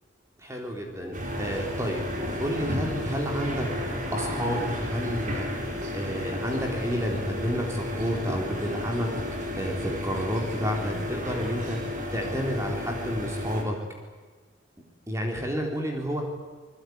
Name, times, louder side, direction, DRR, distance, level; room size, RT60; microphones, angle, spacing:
voice 1, 0.4-2.1 2.4-9.1 9.6-13.8 15.1-16.2, equal, 15° right, 1 dB, 3.8 m, -30 dB
sound 1, 1.1-13.6, left 1 dB, 40° right, 4.4 m, -32 dB
27.0 x 21.0 x 9.6 m, 1.4 s
head